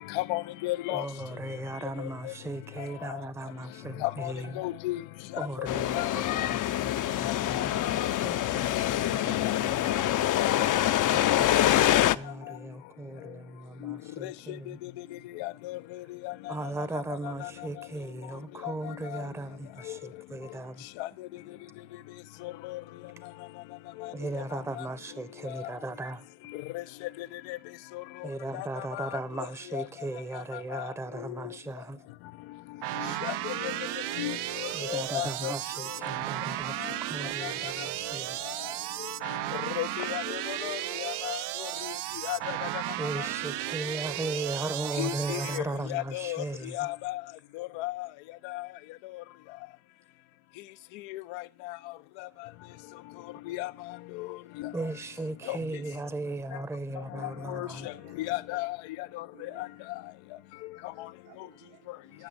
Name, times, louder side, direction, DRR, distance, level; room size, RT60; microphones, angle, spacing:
voice 1, 0.1-1.0 4.0-5.0 5.3-5.7 5.9-6.1 7.5-7.6 8.7-8.9 9.6-10.1 10.4-10.5 11.2-11.4 13.8-14.0 14.2-14.3 14.8-14.9 15.4-15.8 16.2-16.3 21.0-21.1 22.7-22.8 27.5-27.6 28.5-28.7 28.9-29.1 29.7-29.8 30.7-30.8 33.2-33.7 34.2-34.4 34.8-35.5 39.8-41.4 42.3-42.4 45.0-45.6 45.9-46.4 46.7-47.2 47.6-48.1 48.5-48.6 51.1-51.4 53.5-53.7 54.2-54.3 55.5-55.6 57.5-57.7 58.2-58.8, left 18 dB, 85° left, 0.7 m, -33 dB
voice 2, 0.9-4.6 5.4-9.9 11.1-14.8 16.5-20.9 24.1-26.3 28.2-32.0 34.7-38.4 43.0-46.9 54.7-57.9, right 2 dB, 5° right, 0.7 m, -37 dB
sound 1, 5.7-12.2, left 13 dB, 45° left, 0.5 m, -25 dB
sound 2, 32.8-45.6, right 16 dB, 65° right, 0.5 m, -34 dB
voice 3, 55.4-55.7 57.3-57.4 57.9-58.4 59.3-59.9 60.7-62.1, right 7 dB, 85° right, 4.4 m, -57 dB
10.5 x 5.9 x 8.2 m
supercardioid pair, 90°, 44 cm